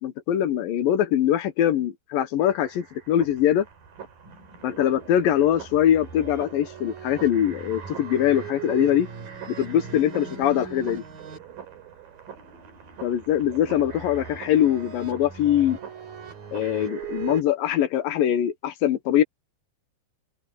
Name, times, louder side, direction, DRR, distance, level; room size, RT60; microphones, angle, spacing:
voice 1, 0.0-3.7 4.6-9.1 9.5-11.0 13.0-15.8 16.5-19.2, left 10 dB, 65° left, 2.4 m, -22 dB
sound 1, 2.4-17.4, right 7 dB, 55° right, 5.3 m, -39 dB
open air
omnidirectional pair, 5.1 m